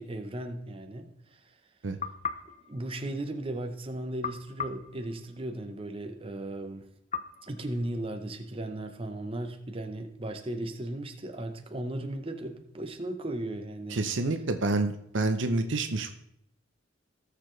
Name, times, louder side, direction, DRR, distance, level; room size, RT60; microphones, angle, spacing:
voice 1, 0.0-1.5 2.7-6.9 7.4-14.0, right 1 dB, 25° right, 5 dB, 0.8 m, -36 dB
sound 1, 2.0-3.6 4.2-5.8 7.1-8.5, left 6 dB, 35° left, 0.6 m, -40 dB
voice 2, 13.9-16.2, right 2 dB, 65° right, 8 dB, 0.7 m, -28 dB
17.5 x 6.8 x 3.2 m, 0.73 s
head